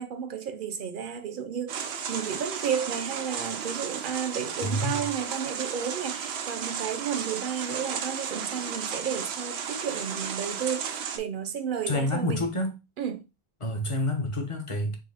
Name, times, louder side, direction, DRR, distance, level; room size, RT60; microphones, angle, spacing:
voice 1, 0.0-12.5 13.0-13.2, right 7 dB, 60° right, 0.7 m, -32 dB
sound 1, 1.7-11.2, right 7 dB, 90° right, 0.9 m, -34 dB
voice 2, 4.6-5.0 11.9-12.7 13.6-15.0, left 1 dB, 35° left, 0.8 m, -28 dB
4.0 x 2.6 x 4.1 m
omnidirectional pair, 1.1 m